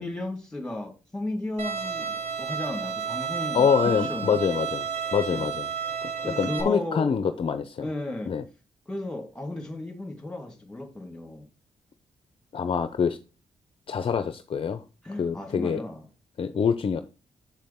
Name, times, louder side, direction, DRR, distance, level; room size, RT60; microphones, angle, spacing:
voice 1, 0.0-4.4 5.3-5.5 6.2-7.3 7.8-8.3 8.9-11.4 15.0-16.0, left 2 dB, 5° left, 2.8 m, -34 dB
Bowed string instrument, 1.6-6.6, right 6 dB, 50° right, 2.7 m, -31 dB
voice 2, 3.5-5.7 6.4-7.9 8.3-8.4 12.5-13.2 13.9-14.8 15.2-15.8 16.4-17.0, left 6 dB, 40° left, 0.7 m, -25 dB
7.5 x 7.4 x 3.7 m
wide cardioid pair, 150°, 13 cm